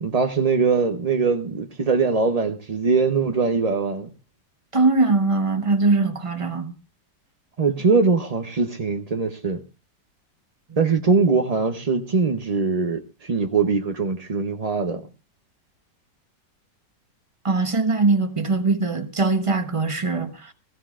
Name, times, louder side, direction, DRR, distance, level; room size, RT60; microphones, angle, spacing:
voice 1, 0.0-4.1 7.6-9.6 10.8-15.0, right 4 dB, 50° right, 0.4 m, -22 dB
voice 2, 4.7-6.7 10.7-10.8 17.4-20.5, right 3 dB, 25° right, 0.9 m, -21 dB
19.5 x 15.0 x 2.4 m
omnidirectional pair, 1.9 m